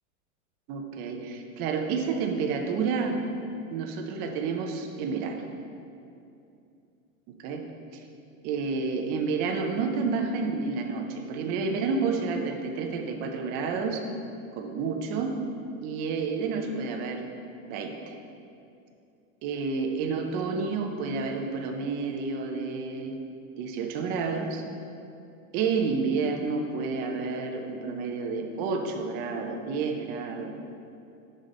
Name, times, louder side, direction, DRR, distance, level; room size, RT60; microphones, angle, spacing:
voice 1, 0.7-3.2 3.7-5.4 7.4-7.6 8.4-14.1 14.5-15.3 15.8-17.3 17.7-18.2 19.4-23.3 23.6-24.6 25.5-30.5, right 4 dB, 25° right, 3 dB, 0.4 m, -30 dB
5.7 x 5.0 x 5.2 m, 2.6 s
supercardioid pair, 150°, 41 cm